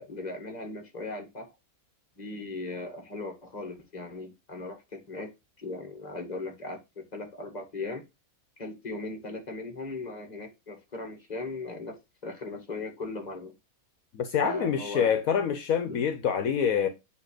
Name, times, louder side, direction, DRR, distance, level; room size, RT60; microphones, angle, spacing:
voice 1, 0.0-1.5 2.2-5.3 5.6-8.0 8.6-13.5 14.4-15.4 15.8-16.0, left 2 dB, 30° left, 1.8 m, -38 dB
voice 2, 14.1-16.9, left 7 dB, 75° left, 1.2 m, -26 dB
8.5 x 3.0 x 4.8 m
omnidirectional pair, 1.5 m